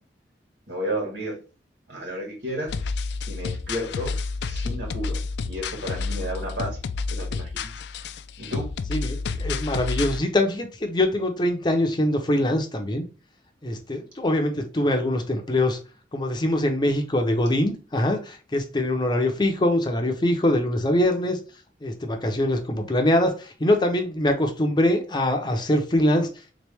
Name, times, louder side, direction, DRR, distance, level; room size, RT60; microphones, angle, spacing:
voice 1, 0.7-1.4 1.9-2.7 3.3-4.2 4.4-6.8 7.1-7.7 8.4-8.7, equal, 80° right, 1.9 m, -32 dB
sound 1, 2.7-10.2, left 4 dB, 75° left, 0.3 m, -30 dB
voice 2, 8.9-13.0 13.6-15.8 16.1-21.4 21.8-26.3, left 1 dB, 25° left, 0.6 m, -23 dB
3.6 x 3.1 x 3.4 m
head